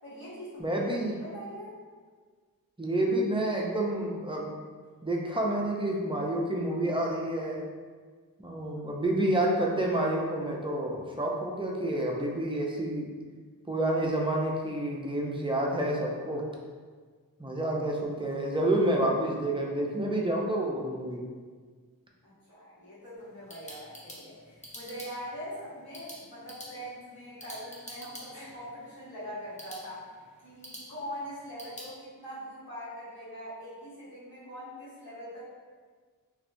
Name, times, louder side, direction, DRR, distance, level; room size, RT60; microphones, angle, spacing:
voice 1, 0.0-1.7 22.2-30.1 30.4-35.4, equal, 80° left, -12 dB, 1.3 m, -42 dB
voice 2, 0.6-1.2 2.8-4.5 5.0-7.6 8.4-13.1 13.7-16.4 17.4-21.2, right 1 dB, 15° right, -2 dB, 0.5 m, -29 dB
sound 1, 23.2-31.9, equal, 20° left, 0.7 m, -48 dB
3.1 x 2.5 x 2.6 m, 1.5 s
wide cardioid pair, 55°, 35 cm